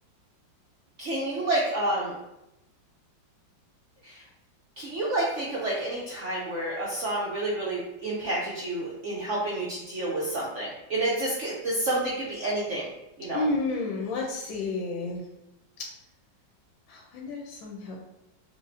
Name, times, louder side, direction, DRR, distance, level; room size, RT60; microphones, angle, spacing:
voice 1, 1.0-2.1 4.0-4.1 4.8-12.9 13.2-13.5, right 1 dB, 70° right, -5 dB, 0.7 m, -29 dB
voice 2, 13.3-15.2 16.9-18.0, left 2 dB, 85° left, -1 dB, 1.4 m, -31 dB
6.3 x 2.4 x 2.6 m, 0.91 s
omnidirectional pair, 2.1 m